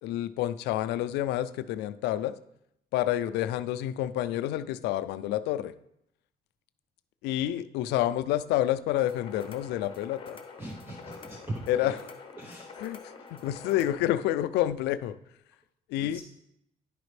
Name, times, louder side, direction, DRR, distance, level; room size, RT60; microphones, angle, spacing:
voice 1, 0.0-2.4 2.9-5.7 7.2-10.4 11.7-12.0 12.8-13.0 13.3-15.2 15.9-16.2, left 13 dB, 85° left, 13 dB, 0.4 m, -28 dB
sound 1, 8.9-14.0, left 4 dB, 30° left, 1.0 m, -46 dB
voice 2, 10.6-11.9 12.4-12.7 16.0-16.2, right 1 dB, 15° right, 2 dB, 0.7 m, -40 dB
10.5 x 5.0 x 3.2 m, 0.78 s
cardioid pair, 110°, 17 cm